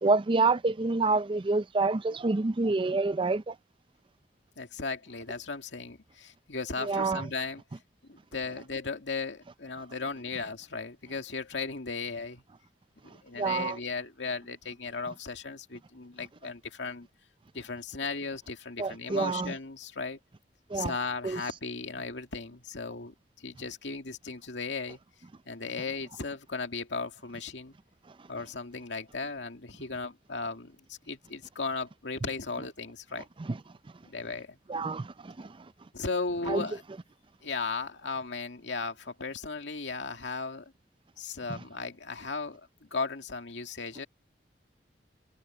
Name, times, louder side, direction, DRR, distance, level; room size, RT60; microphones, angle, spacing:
voice 1, 0.0-3.6 6.8-7.2 13.4-13.8 18.8-19.5 20.7-20.9 21.2-21.4 33.4-33.6 34.7-35.7 36.5-36.6 41.5-41.6, right 3 dB, 30° right, 0.5 m, -27 dB
voice 2, 4.6-7.6 8.1-12.4 13.0-17.1 17.5-20.2 20.7-25.0 25.5-27.7 28.3-33.3 34.0-34.6 35.9-36.8 37.4-40.7 41.2-44.1, left 4 dB, 90° left, 2.3 m, -36 dB
head